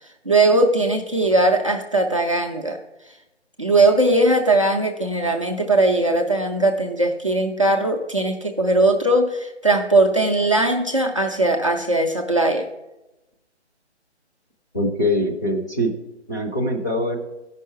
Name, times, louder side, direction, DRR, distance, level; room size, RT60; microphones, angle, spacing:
voice 1, 0.0-2.8 3.6-12.7, right 2 dB, 30° right, 1 dB, 0.5 m, -19 dB
voice 2, 14.7-15.9 16.3-17.2, left 1 dB, 15° left, -2 dB, 0.6 m, -23 dB
13.5 x 5.5 x 4.6 m, 0.97 s
figure-of-eight pair, 150°, 35 cm